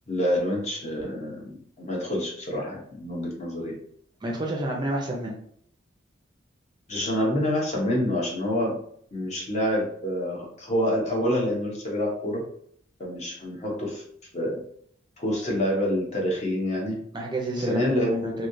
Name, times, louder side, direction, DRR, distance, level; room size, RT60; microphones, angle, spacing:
voice 1, 0.1-3.8 6.9-8.8 9.1-12.4 13.0-14.0 14.3-14.6 15.2-17.0 17.6-18.5, left 1 dB, 35° left, -2 dB, 0.9 m, -27 dB
voice 2, 4.2-5.4 17.1-18.5, right 1 dB, 20° right, -1 dB, 0.5 m, -30 dB
3.1 x 2.7 x 2.6 m, 0.63 s
head